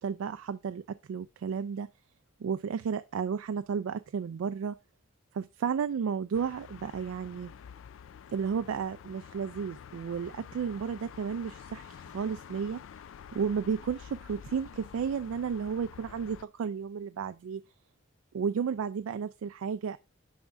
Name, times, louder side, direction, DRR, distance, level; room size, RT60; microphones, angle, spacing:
voice 1, 0.0-1.9 2.4-4.7 5.3-7.5 8.3-12.8 13.3-17.6 18.3-20.0, right 6 dB, 85° right, 0.3 m, -33 dB
sound 1, 6.3-16.5, left 8 dB, 70° left, 0.3 m, -49 dB
6.2 x 5.1 x 3.3 m
head